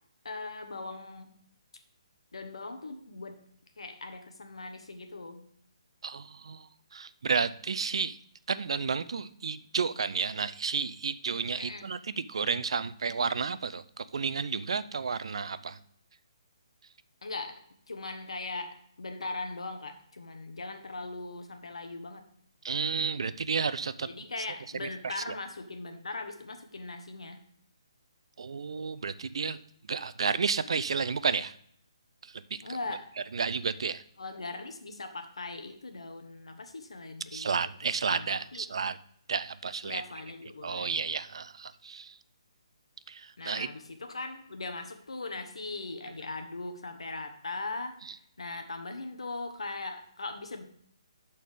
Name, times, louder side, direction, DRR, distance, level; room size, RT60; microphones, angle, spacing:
voice 1, 0.2-1.3 2.3-3.3 3.8-5.5 11.6-11.9 17.2-22.2 24.1-27.4 32.6-33.1 34.2-37.5 38.1-38.7 39.8-41.1 43.4-50.6, left 3 dB, 80° left, 6 dB, 1.3 m, -40 dB
voice 2, 6.0-8.2 8.5-15.8 22.6-24.1 24.8-25.4 28.4-29.6 29.9-31.5 32.2-32.6 33.3-34.0 37.3-39.0 39.3-40.0 40.6-42.2 43.1-43.7, right 5 dB, 65° right, 15 dB, 0.5 m, -32 dB
12.5 x 4.3 x 3.6 m, 0.65 s
hypercardioid pair, 150°, 3 cm